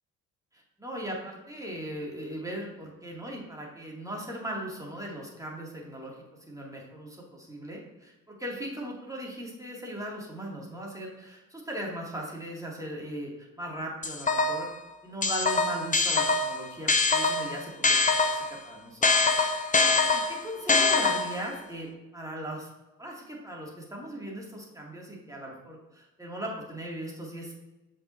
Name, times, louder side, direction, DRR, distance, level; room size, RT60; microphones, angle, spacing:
voice 1, 0.5-14.7 15.0-19.3 19.6-19.7 20.1-21.9 22.1-22.7 23.0-27.5, right 1 dB, 10° right, -2 dB, 2.4 m, -38 dB
sound 1, 14.0-14.7 15.2-18.6 19.0-21.5, left 3 dB, 20° left, 0.7 m, -24 dB
8.5 x 6.0 x 2.7 m, 1.0 s
figure-of-eight pair, 40°, 40 cm